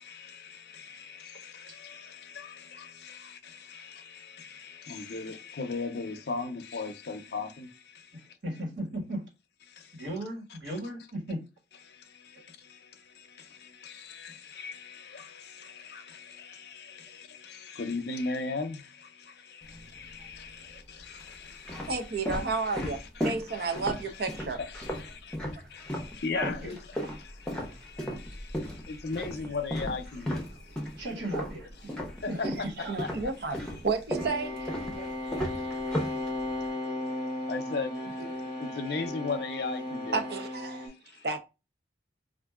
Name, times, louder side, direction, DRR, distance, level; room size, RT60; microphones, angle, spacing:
voice 1, 0.0-8.4 9.6-10.2 10.5-10.8 11.7-25.4 25.7-31.1 31.7-33.9 34.4-34.5 35.2-36.3 36.6-41.3, left 4 dB, 65° left, 0.5 m, -39 dB
voice 2, 8.4-9.2 9.9-11.4 26.3-26.7 31.0-31.7 32.3-32.5 32.8-33.0 35.0-35.1, right 1 dB, 90° right, 1.4 m, -35 dB
sound 1, 19.6-20.3 21.0-26.1 26.4-32.7 33.0-36.7, equal, 5° left, 0.7 m, -35 dB
voice 3, 21.9-24.6 25.4-25.5 32.9-34.7 38.2-38.3 40.1-40.9 41.2-41.4, right 4 dB, 60° right, 0.6 m, -32 dB
sound 2, 34.2-40.9, left 1 dB, 40° right, 1.0 m, -35 dB
4.3 x 2.5 x 2.3 m
head